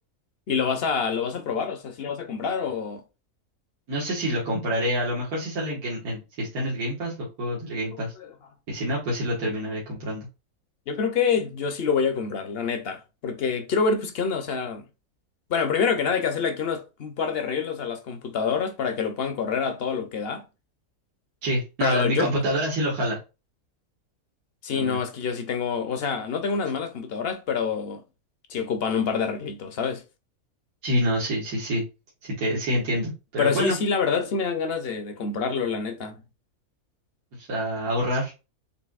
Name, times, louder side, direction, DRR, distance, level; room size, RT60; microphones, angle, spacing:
voice 1, 0.5-3.0 8.2-8.3 10.9-14.8 15.5-20.4 21.8-22.3 24.6-28.0 28.5-30.0 33.4-36.2, left 5 dB, 55° left, 0.8 m, -26 dB
voice 2, 3.9-8.1 8.7-10.3 21.4-23.2 24.7-25.0 30.8-31.8 32.2-33.8 37.4-38.3, equal, 85° right, 1.8 m, -27 dB
6.7 x 2.6 x 2.4 m
omnidirectional pair, 1.5 m